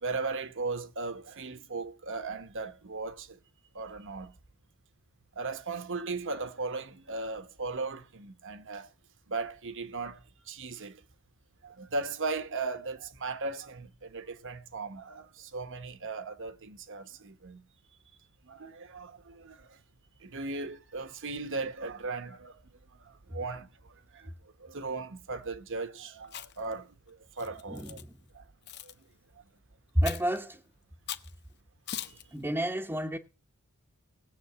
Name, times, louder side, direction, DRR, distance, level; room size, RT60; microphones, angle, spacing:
voice 1, 0.0-3.4 3.7-4.3 5.3-8.9 9.3-11.0 11.6-17.6 18.4-19.8 20.2-22.6 23.0-28.0 28.3-28.5 28.8-28.9 31.9-32.2, right 3 dB, 60° right, 1.3 m, -37 dB
Chewing mastication, 26.2-26.7 27.4-28.0 28.7-28.9 30.0-30.4 31.1-31.3 31.9-32.2, left 10 dB, 50° left, 1.0 m, -40 dB
voice 2, 27.7-28.1 29.9-30.6 32.3-33.2, equal, 10° right, 0.9 m, -30 dB
19.0 x 7.8 x 6.2 m
head